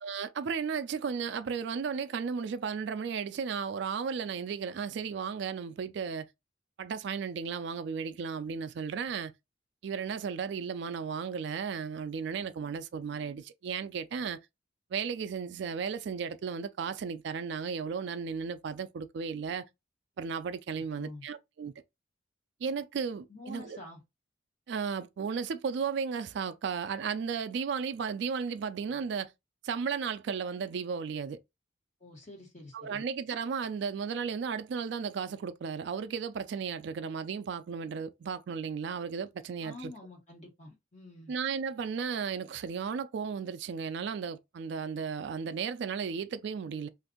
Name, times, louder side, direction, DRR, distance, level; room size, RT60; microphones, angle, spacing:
voice 1, 0.0-6.3 6.8-9.3 9.8-14.4 14.9-19.7 20.2-21.7 22.6-23.8 24.7-29.3 29.6-31.4 32.7-39.9 41.3-46.9, right 6 dB, 60° right, 0.3 m, -34 dB
voice 2, 23.3-24.0 32.0-33.0 39.6-41.3, left 2 dB, 40° left, 1.3 m, -47 dB
2.6 x 2.5 x 3.6 m
head